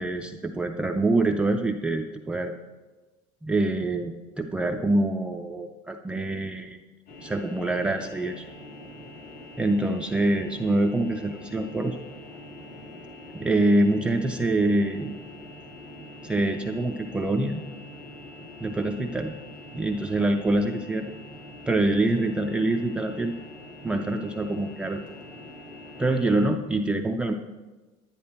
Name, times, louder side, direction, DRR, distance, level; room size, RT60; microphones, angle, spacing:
voice 1, 0.0-2.6 3.4-6.8 7.2-8.5 9.6-12.0 13.3-15.2 16.2-17.6 18.6-19.3 19.7-21.1 21.7-23.3 23.8-25.0 26.0-27.3, right 2 dB, 5° right, 2 dB, 0.3 m, -25 dB
sound 1, 7.1-26.5, left 1 dB, 75° left, 3.0 m, -44 dB
10.5 x 10.5 x 4.2 m, 1.2 s
cardioid pair, 180°, 14 cm